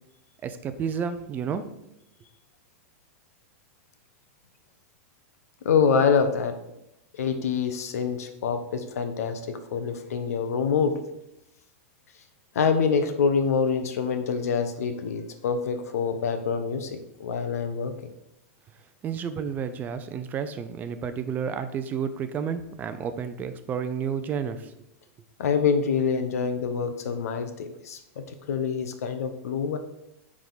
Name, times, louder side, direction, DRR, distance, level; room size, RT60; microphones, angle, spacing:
voice 1, 0.4-1.7 19.0-24.7, right 7 dB, 20° right, 10 dB, 0.5 m, -31 dB
voice 2, 5.6-6.5 7.2-11.0 12.5-17.9 25.4-29.8, left 6 dB, 85° left, 7 dB, 1.0 m, -26 dB
9.7 x 3.7 x 4.0 m, 0.85 s
supercardioid pair, 150°, 8 cm